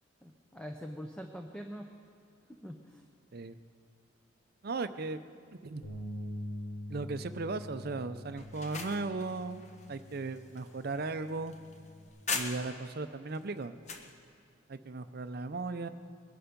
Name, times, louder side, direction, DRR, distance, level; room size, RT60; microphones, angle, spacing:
voice 1, 0.2-1.9 2.5-3.0, equal, 5° left, 3 dB, 0.6 m, -44 dB
voice 2, 4.6-5.2 5.6-5.8 6.9-9.6 9.9-11.5 12.3-13.7 14.7-15.9, right 3 dB, 50° right, 11 dB, 0.6 m, -36 dB
Bass guitar, 5.8-12.1, left 1 dB, 55° left, 4.1 m, -45 dB
sound 1, 8.4-12.9 13.3-14.1, left 4 dB, 35° left, 1.1 m, -41 dB
21.5 x 11.5 x 5.2 m, 2.3 s
head